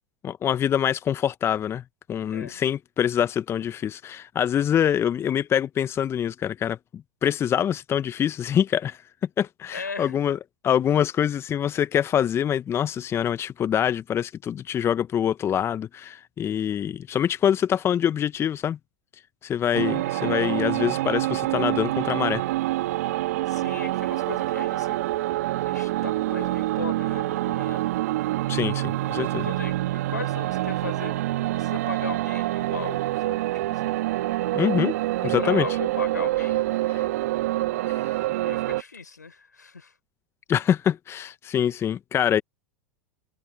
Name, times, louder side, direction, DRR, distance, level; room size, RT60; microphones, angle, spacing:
voice 1, 0.2-1.8 2.1-9.0 9.4-10.4 10.6-18.8 19.4-22.4 28.5-29.5 34.5-35.0 35.2-35.7 36.9-37.0 37.8-38.1 40.5-42.4, left 9 dB, 30° left, 1.0 m, -25 dB
voice 2, 9.7-10.2 23.5-25.0 25.7-28.0 29.4-31.2 31.6-34.3 35.2-36.6 38.4-39.9, left 4 dB, 90° left, 4.1 m, -38 dB
sound 1, 19.7-38.8, right 16 dB, 65° right, 1.9 m, -26 dB
hypercardioid pair, 90°, 9 cm